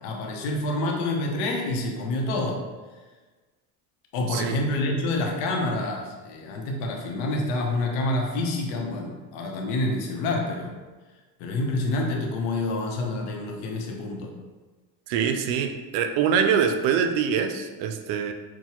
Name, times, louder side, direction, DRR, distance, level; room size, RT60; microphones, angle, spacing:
voice 1, 0.0-2.6 4.1-10.7 11.4-14.3, left 2 dB, 85° left, 1 dB, 0.9 m, -27 dB
voice 2, 15.1-18.3, right 7 dB, 85° right, 7 dB, 0.6 m, -24 dB
6.0 x 2.3 x 2.9 m, 1.3 s
cardioid pair, 125°, 41 cm